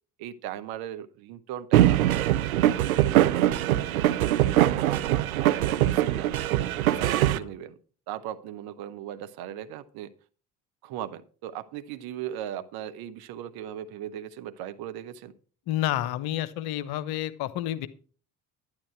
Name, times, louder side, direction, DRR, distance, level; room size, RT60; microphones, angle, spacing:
voice 1, 0.2-4.9 5.4-6.3 6.8-7.8 8.1-10.1 10.8-15.3, right 11 dB, 60° right, 10 dB, 1.1 m, -38 dB
sound 1, 1.7-7.4, right 13 dB, 80° right, 0.6 m, -22 dB
voice 2, 15.7-17.9, left 13 dB, 60° left, 14 dB, 1.0 m, -30 dB
11.5 x 10.5 x 4.5 m, 0.40 s
figure-of-eight pair, 50°, 42 cm